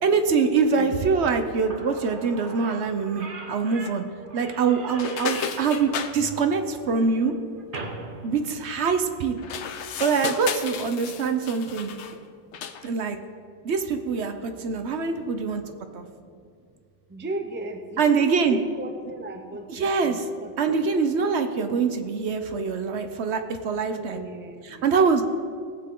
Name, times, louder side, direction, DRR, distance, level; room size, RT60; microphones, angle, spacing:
voice 1, 0.0-4.0 4.3-7.3 8.2-9.4 10.0-11.9 12.8-13.2 13.6-15.6 15.9-16.1 18.0-18.6 19.7-20.3 20.6-24.2 24.6-25.2, right 5 dB, 65° right, 7 dB, 1.0 m, -24 dB
Slam / Squeak, 1.7-9.2, right 3 dB, 45° right, 1.1 m, -41 dB
sound 1, 4.9-6.1 9.4-12.2 12.5-12.9, left 7 dB, 75° left, 0.9 m, -33 dB
voice 2, 17.1-20.8 23.9-24.9, right 2 dB, 10° right, 6 dB, 0.6 m, -35 dB
18.0 x 7.8 x 3.8 m, 2.2 s
omnidirectional pair, 1.2 m